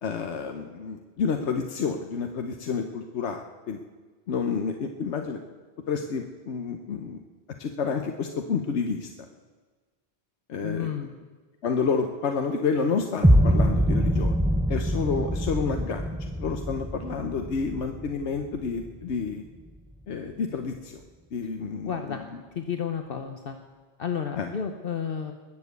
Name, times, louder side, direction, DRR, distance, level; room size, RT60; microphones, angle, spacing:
voice 1, 0.0-3.8 4.3-5.4 5.9-7.2 7.6-9.1 10.5-10.9 11.6-14.3 14.7-19.4 20.1-21.0 21.3-22.2 24.4-24.5, left 5 dB, 85° left, 5 dB, 1.2 m, -29 dB
voice 2, 10.6-11.1 21.9-22.2 22.5-23.6 24.0-25.3, left 7 dB, 55° left, 6 dB, 1.1 m, -31 dB
sound 1, 13.2-19.2, equal, 5° right, 0.5 m, -24 dB
20.5 x 7.3 x 8.1 m, 1.4 s
omnidirectional pair, 1.1 m